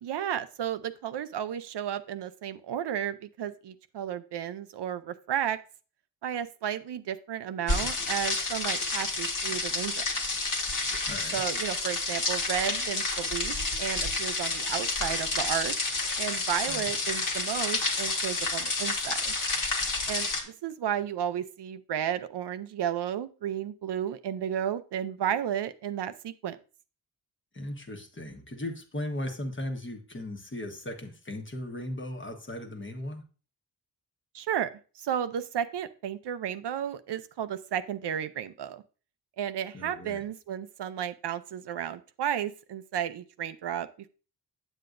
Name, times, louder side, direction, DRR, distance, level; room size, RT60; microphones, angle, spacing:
voice 1, 0.0-5.6 6.2-10.0 11.3-15.7 16.2-19.3 20.1-26.6 34.3-34.7 35.0-38.8 39.4-43.9, right 9 dB, 70° right, 12 dB, 0.5 m, -33 dB
sound 1, 7.7-20.4, left 3 dB, 50° left, 1.4 m, -30 dB
voice 2, 11.1-11.4 16.7-16.9 27.5-33.2 39.7-40.2, left 1 dB, 30° left, 4 dB, 1.2 m, -37 dB
8.0 x 7.7 x 2.5 m, 0.36 s
wide cardioid pair, 90°, 42 cm